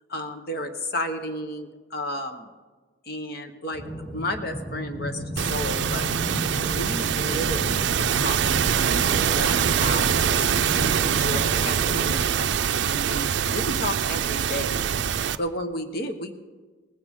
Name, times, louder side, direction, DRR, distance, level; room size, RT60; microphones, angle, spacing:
voice 1, 0.1-2.5 3.0-3.8 4.1-6.1 6.6-9.1 9.4-14.8 15.4-16.3, left 1 dB, 55° left, 7 dB, 1.2 m, -33 dB
sound 1, 3.7-12.2, equal, 20° left, 2.5 m, -34 dB
sound 2, 5.4-15.4, right 8 dB, 65° right, 0.4 m, -24 dB
19.0 x 16.0 x 3.7 m, 1.3 s
head